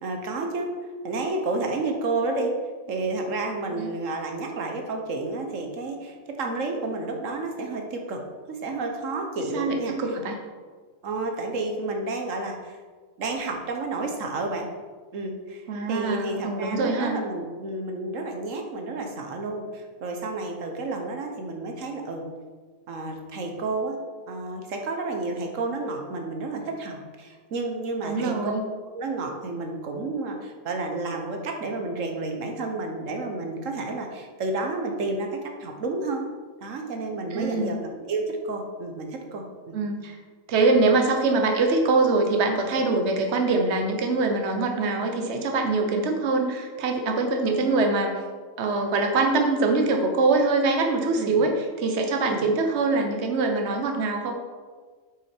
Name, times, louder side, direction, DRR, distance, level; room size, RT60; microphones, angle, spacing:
voice 1, 0.0-0.7 1.0-2.6 2.9-8.2 8.5-10.0 11.0-12.8 13.2-14.7 15.1-22.3 22.9-24.0 24.3-28.5 28.9-35.3 35.6-36.3 36.6-39.8 51.2-51.4 52.3-52.4, right 3 dB, 80° right, 3 dB, 1.3 m, -31 dB
voice 2, 9.5-10.4 15.7-17.2 28.0-28.6 37.3-37.7 39.7-40.2 40.5-48.1 48.6-54.3, right 3 dB, 60° right, 3 dB, 1.2 m, -23 dB
8.1 x 6.2 x 4.4 m, 1.5 s
omnidirectional pair, 1.3 m